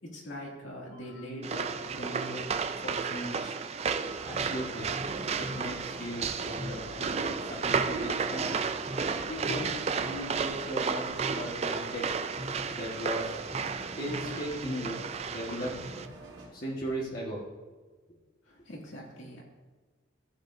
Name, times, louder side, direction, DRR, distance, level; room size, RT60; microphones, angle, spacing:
voice 1, 0.0-3.6 18.5-19.4, equal, 75° left, -3 dB, 2.4 m, -41 dB
sound 1, 1.4-16.1, right 5 dB, 30° right, 0.3 m, -33 dB
sound 2, 4.1-16.5, equal, 75° right, 2.8 m, -43 dB
voice 2, 4.2-4.9 5.4-8.6 9.3-9.7 10.0-11.0 11.3-12.0 12.7-13.4 14.0-15.0 15.3-15.7 16.5-17.4, equal, 45° left, -5 dB, 1.5 m, -37 dB
14.5 x 8.0 x 2.7 m, 1.3 s
head